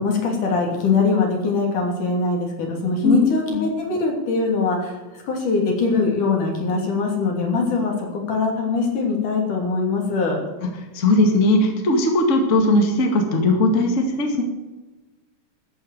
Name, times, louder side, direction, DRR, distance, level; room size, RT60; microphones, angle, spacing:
voice 1, 0.0-10.4, left 4 dB, 70° left, 1 dB, 4.5 m, -22 dB
voice 2, 3.0-3.7 10.6-14.4, left 1 dB, 25° left, 3 dB, 2.0 m, -19 dB
14.0 x 8.7 x 7.6 m, 1.1 s
omnidirectional pair, 3.7 m